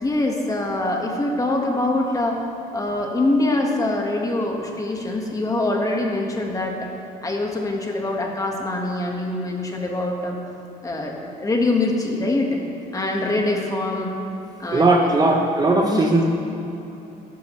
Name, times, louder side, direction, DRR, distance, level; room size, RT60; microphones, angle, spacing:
voice 1, 0.0-2.4 2.7-6.9 7.2-10.4 10.8-12.6 12.9-14.1 14.6-15.2 15.8-16.2, left 2 dB, 20° left, 0 dB, 1.6 m, -24 dB
voice 2, 14.7-16.2, right 2 dB, 25° right, 1 dB, 0.9 m, -18 dB
14.0 x 11.0 x 3.2 m, 3.0 s
cardioid pair, 110°, 17 cm